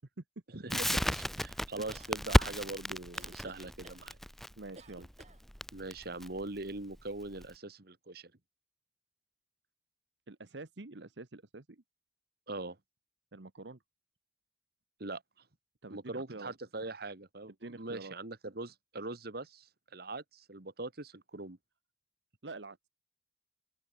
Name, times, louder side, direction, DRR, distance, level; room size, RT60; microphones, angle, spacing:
voice 1, 0.5-4.2 5.7-8.3 12.5-12.8 15.0-15.2 15.9-19.7 19.9-21.6, right 2 dB, 60° right, 2.0 m, -42 dB
Crackle, 0.7-7.5, equal, ahead, 1.2 m, -33 dB
sound 1, 1.9-2.6 3.1-4.0 4.8-5.4, right 2 dB, 40° right, 7.3 m, -54 dB
voice 2, 4.6-5.1 10.3-11.8 13.3-13.8 15.8-16.5 17.6-18.1 22.4-22.8, right 3 dB, 90° right, 1.3 m, -47 dB
open air
head